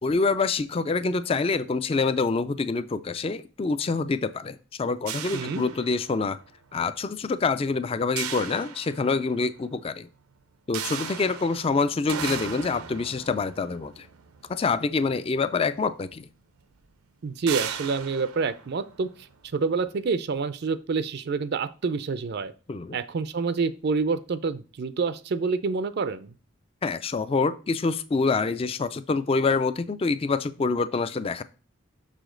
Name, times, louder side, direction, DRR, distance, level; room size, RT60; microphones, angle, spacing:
voice 1, 0.0-6.4 6.7-10.1 10.7-14.1 14.5-16.3 22.7-23.0 26.8-31.4, left 4 dB, 25° left, 13 dB, 0.3 m, -26 dB
sound 1, 5.1-6.4 8.2-9.5 10.7-15.2 16.1-16.2 16.6-16.8 17.5-19.5, right 8 dB, 90° right, 0.7 m, -37 dB
voice 2, 5.3-5.6 17.2-19.3 19.5-22.5 22.9-26.3, right 4 dB, 50° right, 13 dB, 0.4 m, -27 dB
6.4 x 5.0 x 3.8 m, 0.36 s
head